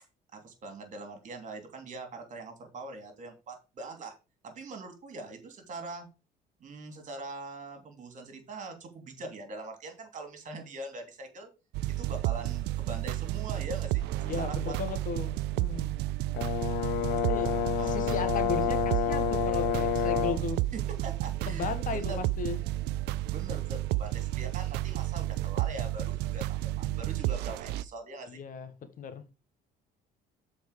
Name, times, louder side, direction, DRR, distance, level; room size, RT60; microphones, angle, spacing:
voice 1, 0.3-4.1 4.4-6.1 6.6-11.5 12.0-14.7 17.8-17.9 20.7-22.2 23.3-28.4, right 2 dB, 45° right, 2.9 m, -42 dB
sound 1, 11.7-27.8, right 15 dB, 90° right, 0.4 m, -32 dB
voice 2, 14.2-15.9 17.1-20.6 21.5-22.6 28.3-28.7 29.0-29.3, left 6 dB, 55° left, 1.4 m, -36 dB
Brass instrument, 16.3-20.5, left 10 dB, 85° left, 1.1 m, -29 dB
7.2 x 4.5 x 6.5 m
cardioid pair, 110°, 17 cm